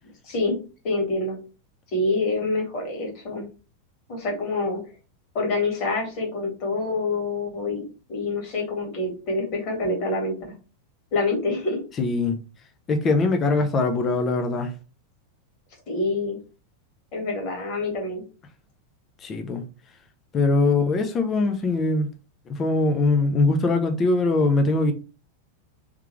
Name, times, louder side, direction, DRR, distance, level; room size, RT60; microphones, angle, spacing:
voice 1, 0.2-0.6 0.8-1.4 1.9-3.5 4.1-4.8 5.3-7.8 8.1-10.3 11.1-11.8 15.9-16.4 17.1-18.2, left 2 dB, 40° left, 1.7 m, -26 dB
voice 2, 12.0-12.4 12.9-14.7 19.2-19.6 20.3-22.1 22.5-24.9, left 3 dB, 25° left, 0.7 m, -22 dB
3.6 x 3.5 x 3.1 m
figure-of-eight pair, 90°, 0 cm